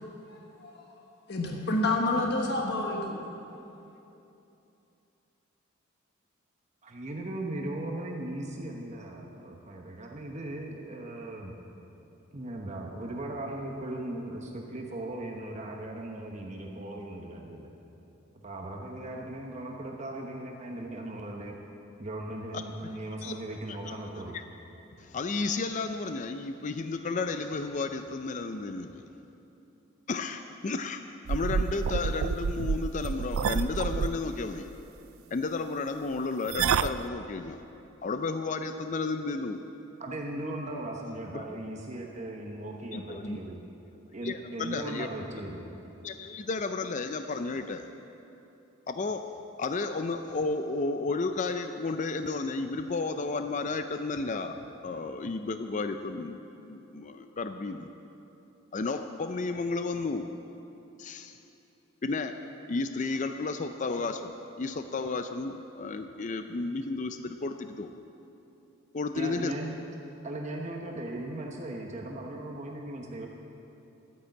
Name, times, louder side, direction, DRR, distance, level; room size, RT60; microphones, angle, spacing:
voice 1, 0.3-0.8 1.3-3.2, left 2 dB, 55° left, 0 dB, 1.3 m, -29 dB
voice 2, 6.8-11.5 12.3-17.7 18.3-21.5 22.0-24.4 40.0-43.6 44.1-45.7 69.1-69.7 70.2-73.3, right 1 dB, 35° right, 0 dB, 1.0 m, -38 dB
voice 3, 25.0-29.0 30.1-34.7 35.3-37.6 38.0-39.6 41.3-41.6 42.9-43.4 44.2-45.1 46.0-47.9 48.9-57.9 58.7-60.3 61.0-61.4 62.0-62.4 62.7-67.9 68.9-69.5, left 3 dB, 40° left, 8 dB, 0.5 m, -33 dB
sound 1, 31.3-34.1 36.5-37.0, right 6 dB, 90° right, 0.4 m, -28 dB
13.5 x 9.7 x 7.8 m, 2.9 s
head